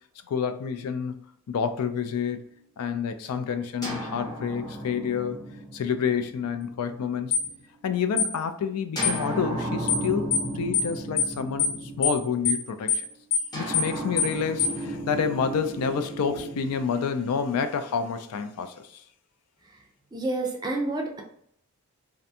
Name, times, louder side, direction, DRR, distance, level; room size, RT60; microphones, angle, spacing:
voice 1, 0.3-1.1 1.5-5.5 5.7-7.4 7.8-13.1 13.5-19.0, left 6 dB, 85° left, 0.3 m, -29 dB
sound 1, 3.8-7.6 9.0-12.5 13.5-17.7, right 1 dB, 20° left, 0.6 m, -35 dB
sound 2, 7.3-7.5 8.2-8.3 9.0-9.2 9.9-10.0 10.3-10.5 10.7-10.9 11.2-11.3 11.6-11.8 12.0-12.2 12.5-12.6 12.9-13.0 13.3-13.5 13.7-13.9 14.2-14.3 14.6-14.8, left 8 dB, 55° left, 0.7 m, -24 dB
voice 2, 20.1-21.2, right 2 dB, 20° right, 0.4 m, -29 dB
2.5 x 2.2 x 2.7 m
head